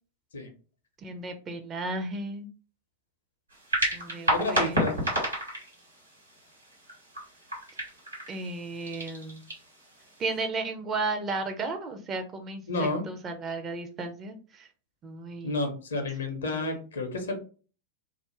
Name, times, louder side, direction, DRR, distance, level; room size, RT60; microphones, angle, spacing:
voice 1, 1.0-2.5 3.9-5.1 8.3-9.4 10.2-14.7 15.0-15.6 16.0-16.1 16.5-16.8, right 3 dB, 25° right, 5 dB, 0.5 m, -34 dB
sound 1, 3.5-10.4, equal, 80° right, 1.1 m, -32 dB
voice 2, 4.3-5.0 12.7-13.0 15.4-17.4, left 2 dB, 70° left, 5 dB, 0.6 m, -30 dB
2.4 x 2.0 x 2.9 m, 0.38 s
figure-of-eight pair, 90°, 0 cm